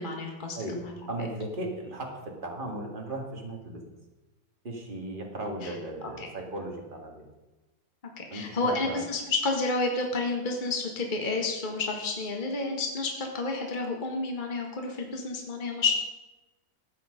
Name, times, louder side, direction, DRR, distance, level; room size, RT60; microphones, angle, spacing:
voice 1, 0.0-0.9 5.6-5.7 6.0-6.3 8.2-15.9, left 3 dB, 25° left, 1 dB, 1.9 m, -30 dB
voice 2, 0.5-3.8 4.6-7.2 8.3-9.0, right 1 dB, 25° right, 1 dB, 2.2 m, -36 dB
15.0 x 9.2 x 5.2 m, 1.1 s
omnidirectional pair, 2.0 m